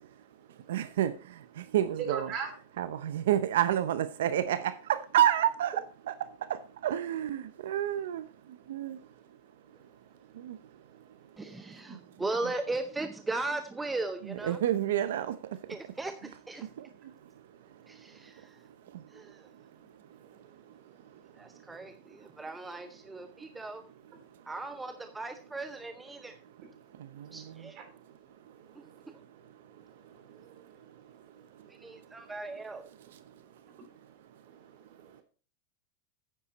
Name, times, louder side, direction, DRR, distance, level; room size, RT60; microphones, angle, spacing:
voice 1, 0.7-1.1 1.7-2.3 2.8-5.8 6.1-6.2 6.5-8.2 8.7-9.0 10.5-10.6 14.2-15.3, right 11 dB, 85° right, 0.6 m, -28 dB
voice 2, 2.1-2.5 11.4-11.5 18.1-18.2 20.2-20.3 22.7-22.8 27.8-27.9 28.5-29.1 29.8-30.7 35.0-35.2, right 6 dB, 40° right, 3.4 m, -42 dB
voice 3, 11.4-14.6 15.7-16.7 17.9-18.6 19.1-19.4 21.4-23.8 24.5-26.3 27.3-27.8 28.8-28.9 31.7-32.8, right 2 dB, 10° right, 0.7 m, -37 dB
9.5 x 8.7 x 4.0 m
supercardioid pair, 150°, 0 cm